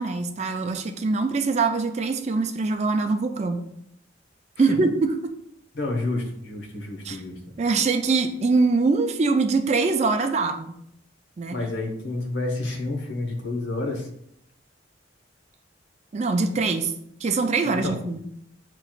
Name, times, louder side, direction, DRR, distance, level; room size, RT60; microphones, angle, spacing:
voice 1, 0.0-3.6 4.6-5.3 7.0-7.2 7.6-10.8 11.4-11.6 16.1-16.9 17.2-18.2, right 4 dB, 35° right, 6 dB, 0.4 m, -23 dB
voice 2, 5.7-7.4 11.5-14.1 17.6-18.0, left 2 dB, 70° left, 1 dB, 1.0 m, -29 dB
7.3 x 3.0 x 2.4 m, 0.73 s
head